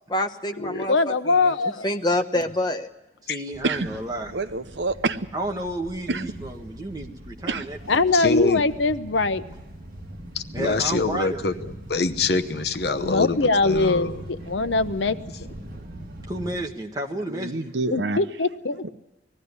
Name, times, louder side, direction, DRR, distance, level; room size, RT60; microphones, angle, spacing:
voice 1, 0.1-1.1 1.4-1.5 1.8-2.9, left 1 dB, 25° left, 6 dB, 1.0 m, -26 dB
voice 2, 0.9-1.8 7.9-9.4 13.0-15.2 17.9-18.8, left 3 dB, 90° left, 11 dB, 0.8 m, -22 dB
voice 3, 3.2-4.4 5.3-8.0 10.5-11.5 16.3-17.7, right 1 dB, 20° right, 1 dB, 1.6 m, -32 dB
sound 1, 3.5-16.6, right 1 dB, 50° right, 2.6 m, -41 dB
voice 4, 4.3-5.2 6.1-6.2 7.5-7.6 17.3-18.2 18.8-18.9, right 3 dB, 75° right, 11 dB, 0.9 m, -27 dB
voice 5, 8.1-8.6 10.3-13.4 13.6-14.2, left 4 dB, 60° left, 9 dB, 0.9 m, -25 dB
20.0 x 15.0 x 9.7 m, 1.0 s
head